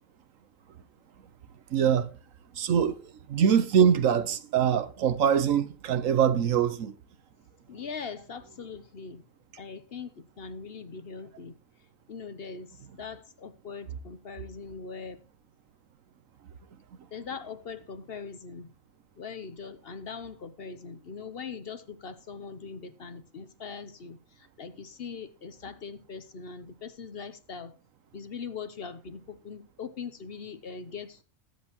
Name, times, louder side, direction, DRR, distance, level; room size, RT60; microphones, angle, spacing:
voice 1, 1.7-2.1 2.5-6.9, right 8 dB, 75° right, 1.2 m, -24 dB
voice 2, 7.7-9.2 9.6-11.6 12.1-15.2 17.1-18.7 19.2-27.7 28.1-31.2, left 5 dB, 50° left, 0.9 m, -41 dB
21.0 x 7.8 x 3.0 m
omnidirectional pair, 1.4 m